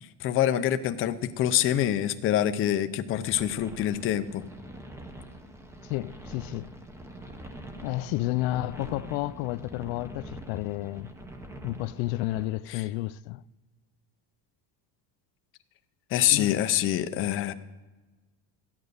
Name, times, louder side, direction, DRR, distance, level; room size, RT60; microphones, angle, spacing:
voice 1, 0.0-4.4 12.7-12.8 16.1-17.5, left 11 dB, 30° left, 0.5 m, -26 dB
sound 1, 3.1-12.4, right 1 dB, 5° right, 0.7 m, -44 dB
voice 2, 5.8-6.7 7.8-11.1 11.6-13.4 16.3-16.5, left 17 dB, 90° left, 0.5 m, -31 dB
13.5 x 9.1 x 6.5 m
cardioid pair, 175°, 44 cm